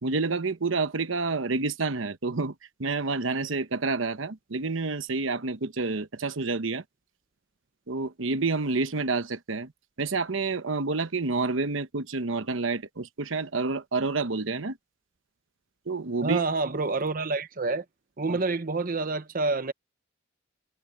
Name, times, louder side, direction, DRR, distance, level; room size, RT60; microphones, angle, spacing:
voice 1, 0.0-2.5 2.8-6.8 7.9-9.7 10.0-14.8 15.9-16.4 18.3-18.4, right 3 dB, 75° right, 1.0 m, -28 dB
voice 2, 16.2-17.8 18.2-19.7, right 3 dB, 45° right, 0.9 m, -28 dB
head